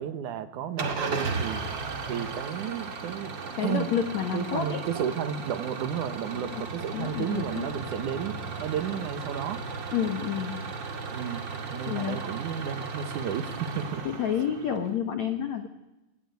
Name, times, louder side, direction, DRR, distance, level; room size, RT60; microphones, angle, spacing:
voice 1, 0.0-1.6 2.1-3.3 3.6-3.9 4.3-9.6 11.1-14.0, right 9 dB, 70° right, 10 dB, 1.9 m, -33 dB
Engine starting / Idling, 0.8-14.9, right 4 dB, 45° right, 1.5 m, -35 dB
voice 2, 3.5-4.8 6.3-6.6 6.9-7.7 9.9-10.6 11.9-12.2 14.0-15.7, left 8 dB, 80° left, 7 dB, 1.5 m, -29 dB
27.0 x 19.5 x 9.5 m, 0.98 s
omnidirectional pair, 5.5 m